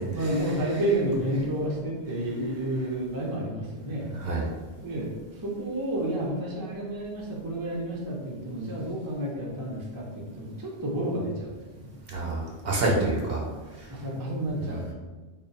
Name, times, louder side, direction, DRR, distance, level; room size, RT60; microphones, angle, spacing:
voice 1, 0.1-4.1 4.8-5.1 5.4-11.9 13.9-14.9, right 1 dB, 25° right, -3 dB, 0.5 m, -30 dB
voice 2, 4.1-4.4 12.1-13.5 13.8-13.9 14.6-14.9, right 2 dB, 65° right, -2 dB, 0.9 m, -28 dB
3.7 x 2.1 x 3.9 m, 1.3 s
omnidirectional pair, 1.2 m